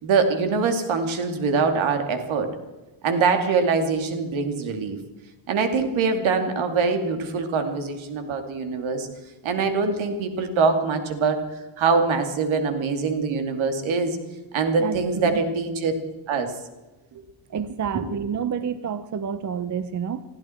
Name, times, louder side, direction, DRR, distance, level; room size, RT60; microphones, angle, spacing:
voice 1, 0.0-2.5 3.0-5.0 5.5-9.1 9.4-11.4 11.8-14.2 14.5-15.9 16.3-16.5 17.9-18.0, right 4 dB, 75° right, 6 dB, 2.6 m, -23 dB
voice 2, 14.8-15.4 17.5-20.2, right 7 dB, 40° right, 13 dB, 0.8 m, -29 dB
21.0 x 15.0 x 4.5 m, 1.1 s
cardioid pair, 115°, 47 cm